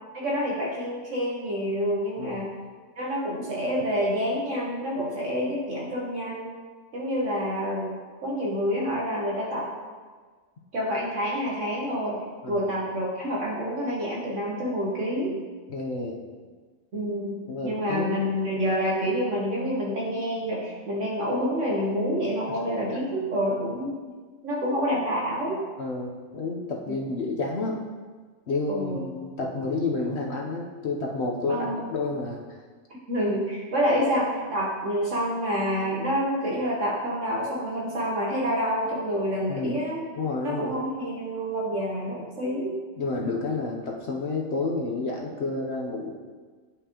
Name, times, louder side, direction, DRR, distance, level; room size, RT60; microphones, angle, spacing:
voice 1, 0.1-2.5 3.0-6.5 6.9-9.7 10.7-12.2 12.5-15.4 16.9-24.0 24.4-25.6 26.9-27.0 28.7-29.1 31.5-31.8 33.1-40.0 40.4-42.8, equal, 60° right, -4 dB, 1.3 m, -28 dB
voice 2, 15.7-16.2 17.5-18.3 22.5-22.6 22.9-23.0 25.8-27.8 28.5-32.4 39.5-39.8 40.2-40.8 43.0-46.1, left 3 dB, 55° left, -1 dB, 0.9 m, -30 dB
10.0 x 5.4 x 2.9 m, 1.5 s
omnidirectional pair, 1.5 m